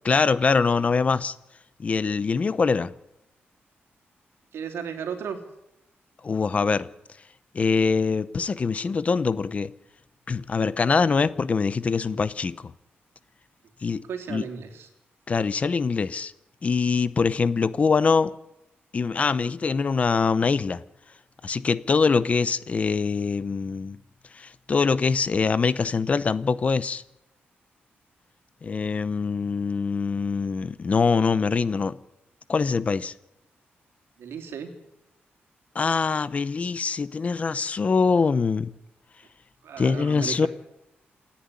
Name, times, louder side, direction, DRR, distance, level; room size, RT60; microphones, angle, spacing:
voice 1, 0.0-1.3 1.8-2.9 6.2-6.9 7.5-9.7 10.3-12.7 13.8-14.0 14.3-14.4 15.3-16.3 16.6-18.3 18.9-20.8 21.4-24.0 24.4-27.0 28.6-32.0 32.5-33.1 35.7-38.7 39.8-40.5, left 5 dB, 35° left, 0.8 m, -23 dB
voice 2, 4.5-5.4 13.9-14.9 34.2-34.7 39.6-40.5, right 7 dB, 85° right, 3.3 m, -34 dB
28.0 x 10.5 x 9.8 m
wide cardioid pair, 160°, 4 cm